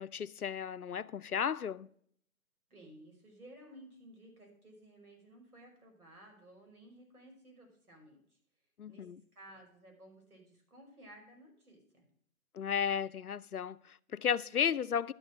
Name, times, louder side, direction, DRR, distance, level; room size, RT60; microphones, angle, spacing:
voice 1, 0.0-1.9 8.8-9.2 12.5-15.1, left 8 dB, 90° left, 0.6 m, -34 dB
voice 2, 2.7-8.4 8.9-12.1, right 1 dB, 90° right, 5.6 m, -56 dB
11.5 x 7.2 x 6.1 m
figure-of-eight pair, 155°, 43 cm